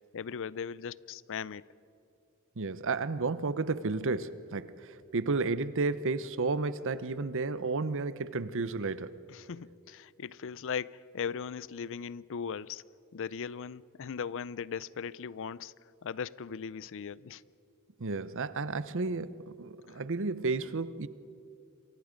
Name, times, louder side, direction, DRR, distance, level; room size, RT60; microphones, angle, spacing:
voice 1, 0.1-1.7 9.3-12.8 13.1-15.7 16.0-17.4 19.9-20.0, left 6 dB, 60° left, 0.5 m, -38 dB
voice 2, 2.6-4.8 5.1-9.2 18.0-21.1, right 3 dB, 60° right, 0.8 m, -32 dB
28.0 x 24.5 x 5.2 m
head